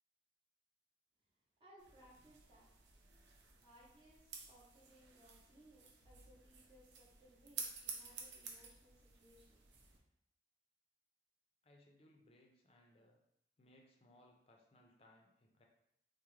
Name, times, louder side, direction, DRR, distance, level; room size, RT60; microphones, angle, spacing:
voice 1, 1.6-2.7 3.6-9.8, equal, 25° right, -9 dB, 0.7 m, -65 dB
sound 1, 1.8-10.0, right 5 dB, 85° right, 0.5 m, -52 dB
voice 2, 11.6-13.2 13.6-15.6, left 1 dB, 30° left, 1 dB, 0.4 m, -67 dB
3.5 x 2.1 x 3.1 m, 0.77 s
head